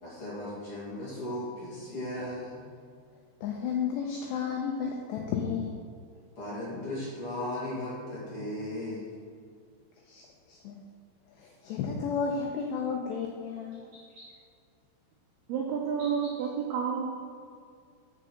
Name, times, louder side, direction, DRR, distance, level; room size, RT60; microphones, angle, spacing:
voice 1, 0.0-2.7 6.4-9.1, left 1 dB, 40° left, -8 dB, 2.2 m, -36 dB
voice 2, 3.4-5.8 10.1-10.2 10.5-10.8 11.4-13.9, left 6 dB, 90° left, 0 dB, 2.4 m, -32 dB
voice 3, 15.5-17.0, right 7 dB, 85° right, -2 dB, 2.2 m, -30 dB
7.7 x 6.7 x 6.4 m, 2.2 s
omnidirectional pair, 5.9 m